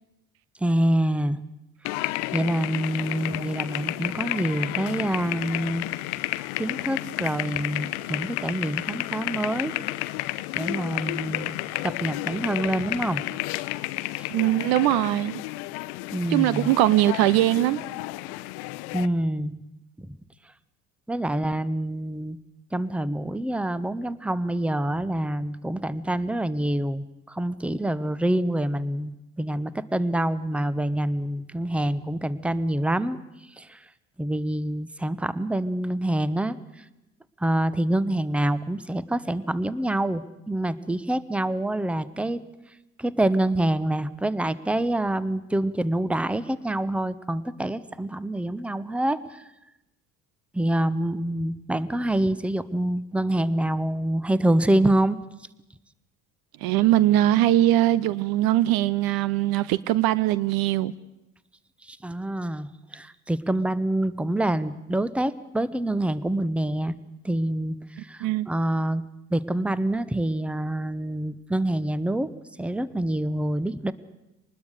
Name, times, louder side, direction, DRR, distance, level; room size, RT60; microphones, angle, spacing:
voice 1, 0.6-1.4 2.3-5.9 6.6-9.7 10.5-11.5 11.8-13.2 14.2-14.3 16.1-16.7 18.9-19.5 20.0-20.2 21.1-22.4 22.7-33.2 33.6-33.8 34.2-36.6 37.4-42.4 43.0-49.4 50.5-55.2 61.9-66.9 67.2-69.0 69.3-72.3 72.6-73.9, right 1 dB, 5° right, 0.9 m, -26 dB
sound 1, 1.8-19.1, left 18 dB, 60° left, 0.7 m, -31 dB
voice 2, 14.3-15.4 16.3-17.8 56.6-60.9 68.2-68.5, right 14 dB, 55° right, 0.7 m, -21 dB
24.5 x 20.0 x 6.6 m
figure-of-eight pair, 60°, 44 cm